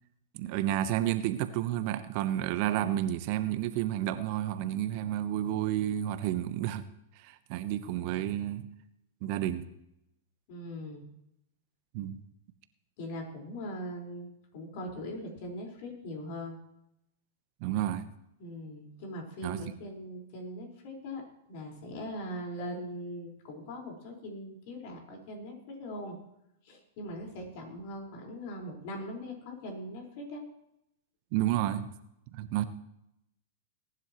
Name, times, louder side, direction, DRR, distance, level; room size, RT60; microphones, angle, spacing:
voice 1, 0.3-6.8 7.2-8.7 9.2-9.7 11.9-12.2 17.6-18.1 19.4-19.6 31.3-31.9 32.3-32.6, right 12 dB, 50° right, 11 dB, 1.0 m, -31 dB
voice 2, 10.5-11.0 13.0-16.6 18.4-21.2 21.5-26.2 26.6-30.4, equal, 55° left, 1 dB, 4.9 m, -41 dB
21.0 x 11.0 x 3.2 m, 0.81 s
hypercardioid pair, 105°, 0 cm